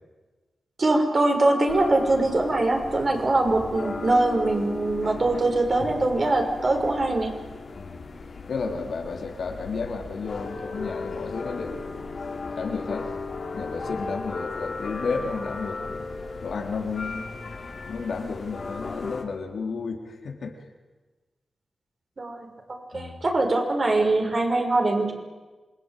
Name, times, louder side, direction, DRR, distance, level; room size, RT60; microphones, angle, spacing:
voice 1, 0.8-7.3 22.2-25.1, right 2 dB, 50° right, 3 dB, 6.0 m, -23 dB
sound 1, 1.7-19.2, left 3 dB, 60° left, 3.6 m, -36 dB
voice 2, 8.5-12.1 12.6-13.1 13.5-16.1 16.4-17.6 17.8-20.6 22.9-23.2, left 4 dB, 80° left, 2 dB, 3.7 m, -32 dB
27.5 x 20.5 x 9.3 m, 1.3 s
cardioid pair, 60°, 0 cm